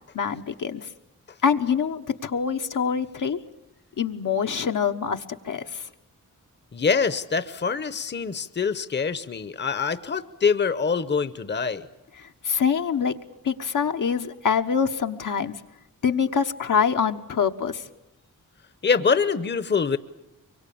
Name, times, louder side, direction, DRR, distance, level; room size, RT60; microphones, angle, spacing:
voice 1, 0.1-0.8 1.4-3.4 4.0-5.8 12.2-13.1 13.4-15.5 16.0-17.8, left 6 dB, 75° left, 5 dB, 1.2 m, -25 dB
voice 2, 6.7-11.9 18.8-20.0, left 5 dB, 35° left, 13 dB, 0.8 m, -24 dB
24.5 x 23.0 x 8.6 m, 0.88 s
wide cardioid pair, 105°, 32 cm